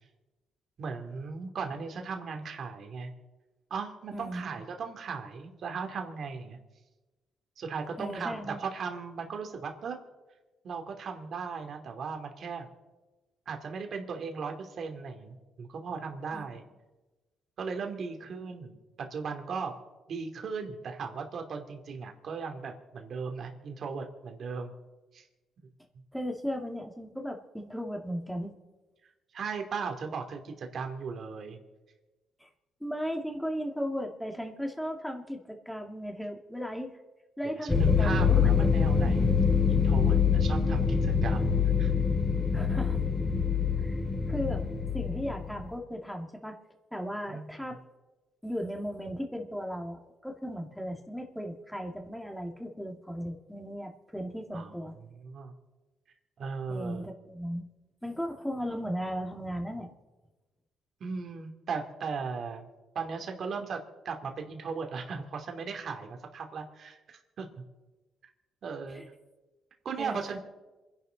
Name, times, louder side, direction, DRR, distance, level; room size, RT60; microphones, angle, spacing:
voice 1, 0.8-3.1 3.7-6.6 7.6-10.0 10.6-12.7 13.5-16.6 17.6-18.8 19.1-19.7 20.1-24.7 25.1-25.3 29.3-31.6 37.6-39.3 39.7-41.5 41.8-41.9 47.3-47.5 54.5-55.5 56.4-57.1 61.0-62.7 62.9-63.8 64.0-67.0 67.4-67.6 68.6-69.0 69.8-70.4, right 5 dB, 60° right, 4 dB, 2.7 m, -37 dB
voice 2, 4.1-4.6 8.0-8.6 16.3-16.6 26.1-28.5 32.4-32.5 32.8-36.9 37.4-38.7 42.5-43.0 43.8-44.0 44.3-44.7 44.9-46.6 46.9-47.8 48.4-54.9 56.7-57.6 58.0-59.9 68.9-69.1 70.0-70.4, equal, ahead, 2 dB, 2.3 m, -36 dB
sound 1, 37.7-45.6, left 6 dB, 20° left, 2.6 m, -25 dB
27.5 x 11.0 x 4.0 m, 1.2 s
cardioid pair, 90°, 0 cm